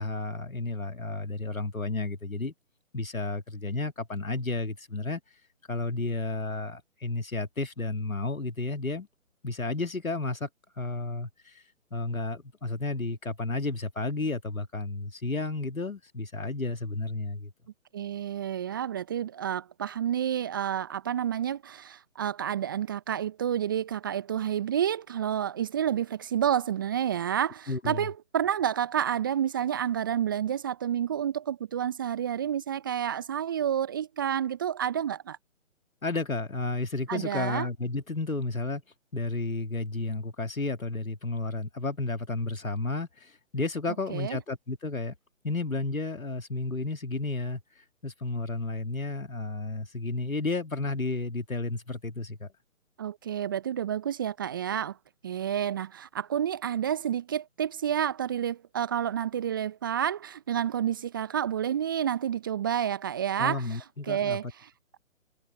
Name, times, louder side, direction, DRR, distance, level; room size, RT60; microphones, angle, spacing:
voice 1, 0.0-2.5 2.9-5.2 5.7-9.1 9.4-10.5 10.8-11.6 11.9-17.5 27.7-28.1 36.0-38.8 39.1-45.1 45.4-47.6 48.0-52.5 63.4-64.4, left 3 dB, 85° left, 2.2 m, -32 dB
voice 2, 17.9-35.4 37.1-37.7 44.1-44.4 53.0-55.0 55.2-63.8 64.1-64.7, right 9 dB, 15° right, 0.8 m, -29 dB
figure-of-eight pair, 145°, 40 cm